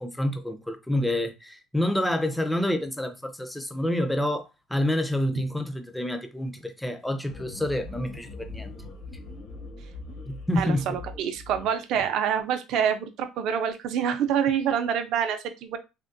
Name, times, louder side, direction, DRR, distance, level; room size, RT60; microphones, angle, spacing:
voice 1, 0.0-8.7 10.3-11.0, left 1 dB, 5° left, 0.4 m, -28 dB
sound 1, 7.3-11.7, left 3 dB, 65° left, 0.8 m, -41 dB
voice 2, 10.6-15.8, right 8 dB, 60° right, 0.5 m, -26 dB
3.5 x 2.1 x 2.6 m
cardioid pair, 140°, 0 cm